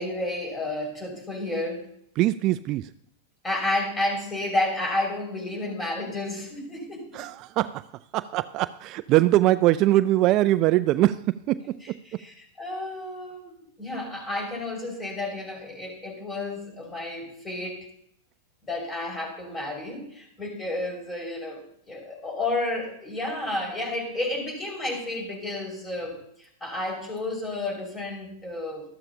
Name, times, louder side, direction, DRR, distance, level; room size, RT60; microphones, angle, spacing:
voice 1, 0.0-1.9 3.4-7.1 11.8-17.9 18.6-28.8, left 2 dB, 20° left, 1 dB, 5.4 m, -31 dB
voice 2, 2.2-2.9 7.1-7.8 8.1-12.0, right 16 dB, 45° right, 15 dB, 0.4 m, -22 dB
13.0 x 12.5 x 2.8 m, 0.72 s
hypercardioid pair, 110°, 0 cm